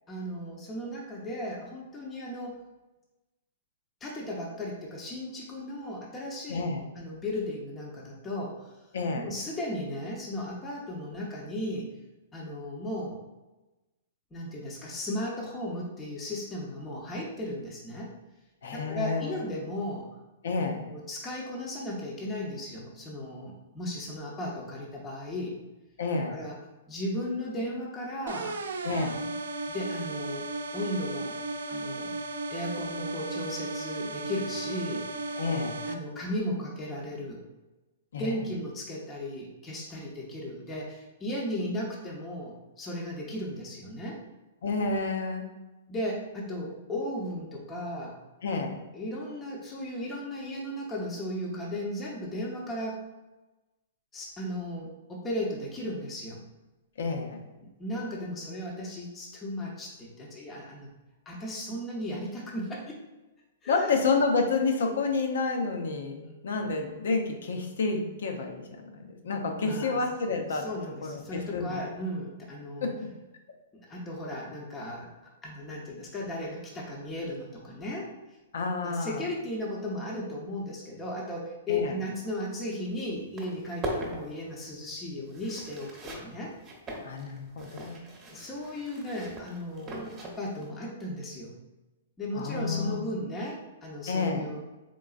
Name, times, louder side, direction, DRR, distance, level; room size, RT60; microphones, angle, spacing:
voice 1, 0.1-2.6 4.0-6.6 7.0-8.5 9.2-11.9 12.3-13.2 14.3-18.1 18.7-20.0 20.9-25.5 26.3-26.5 26.9-28.6 29.7-30.5 30.7-31.4 31.7-32.2 32.5-35.0 35.9-37.4 38.1-44.2 45.9-48.1 48.9-53.0 54.1-56.4 57.6-60.9 61.3-63.0 63.6-64.0 69.5-70.0 70.5-72.9 73.7-75.1 75.4-78.1 78.8-86.5 88.3-91.5 92.2-94.6, left 1 dB, 20° left, -4 dB, 0.7 m, -35 dB
voice 2, 6.5-6.9 8.9-9.3 18.6-19.4 20.4-20.8 26.0-26.4 28.8-29.2 35.4-35.8 38.1-38.3 44.6-45.5 48.4-48.8 57.0-57.4 63.7-68.6 68.9-70.7 71.0-71.8 72.8-72.9 78.5-79.2 81.7-81.9 87.0-88.1 92.4-93.1 94.1-94.5, left 4 dB, 75° left, 4 dB, 0.7 m, -29 dB
sound 1, 28.3-35.9, right 2 dB, 80° right, 0.4 m, -35 dB
sound 2, 82.8-82.9 83.2-90.7, right 1 dB, 25° right, 0.9 m, -40 dB
3.8 x 3.7 x 2.4 m, 1.1 s
hypercardioid pair, 130°, 0 cm